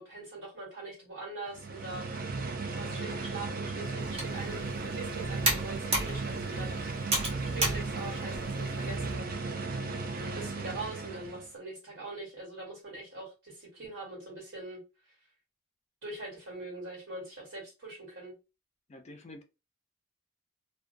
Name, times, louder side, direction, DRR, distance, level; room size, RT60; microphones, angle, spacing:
voice 1, 0.0-2.1 2.7-6.9 7.5-9.7 10.3-14.8 16.0-18.3, right 2 dB, 65° right, 1.4 m, -42 dB
sound 1, 1.5-11.5, right 3 dB, 45° right, 0.4 m, -35 dB
Computer keyboard, 4.0-9.2, right 2 dB, 30° right, 0.8 m, -34 dB
voice 2, 18.9-19.4, left 1 dB, 30° left, 0.4 m, -48 dB
2.4 x 2.2 x 2.5 m
head